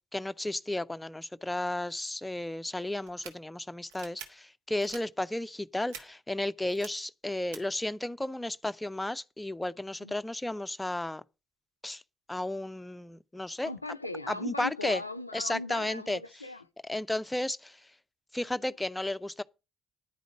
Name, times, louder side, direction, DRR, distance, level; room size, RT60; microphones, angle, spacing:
voice 1, 0.1-11.2 11.8-12.0 12.3-13.7 14.3-15.0 15.3-16.2 16.9-17.9 18.3-19.4, left 1 dB, 10° left, 0.6 m, -33 dB
sound 1, 3.0-3.3 3.9-4.3 4.8-5.0 5.9-6.0 6.7-6.9 7.5-7.6, right 8 dB, 70° right, 1.4 m, -44 dB
voice 2, 13.6-16.6, left 2 dB, 85° left, 0.4 m, -38 dB
11.0 x 5.1 x 7.7 m
figure-of-eight pair, 45°, 0 cm